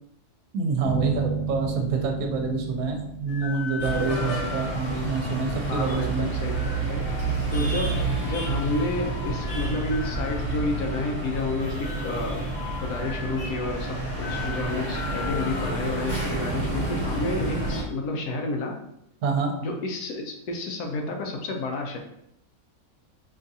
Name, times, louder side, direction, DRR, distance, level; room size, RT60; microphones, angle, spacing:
voice 1, 0.5-6.3 19.2-19.5, right 4 dB, 70° right, 2 dB, 1.1 m, -27 dB
sound 1, 0.8-4.8, right 4 dB, 10° left, 0.8 m, -32 dB
sound 2, 3.3-17.8, left 5 dB, 65° left, 0.9 m, -40 dB
sound 3, 3.8-17.8, right 2 dB, 35° left, 1.0 m, -29 dB
voice 2, 5.7-6.6 6.9-7.1 7.5-12.4 12.8-18.8 19.6-22.0, left 2 dB, 85° left, 2 dB, 1.2 m, -30 dB
4.9 x 2.4 x 2.7 m, 0.80 s
omnidirectional pair, 1.6 m